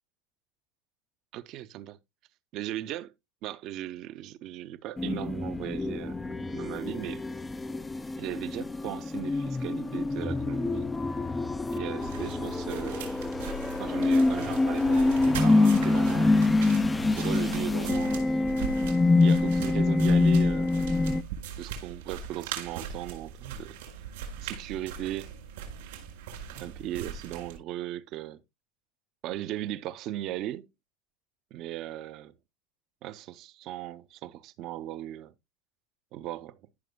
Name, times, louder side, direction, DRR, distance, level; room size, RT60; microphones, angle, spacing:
voice 1, 1.3-2.0 2.5-3.1 3.4-7.2 8.2-10.9 11.7-13.2 13.8-16.4 17.2-18.3 19.2-20.7 21.6-23.8 24.4-25.3 26.5-28.4 29.2-30.7 31.5-32.3 33.0-35.3 36.1-36.6, right 13 dB, 40° right, 0.6 m, -37 dB
sound 1, 5.0-21.2, left 3 dB, 10° left, 0.4 m, -26 dB
sound 2, 12.0-27.6, right 7 dB, 85° right, 4.7 m, -40 dB
14.5 x 6.0 x 2.2 m
supercardioid pair, 170°, 0 cm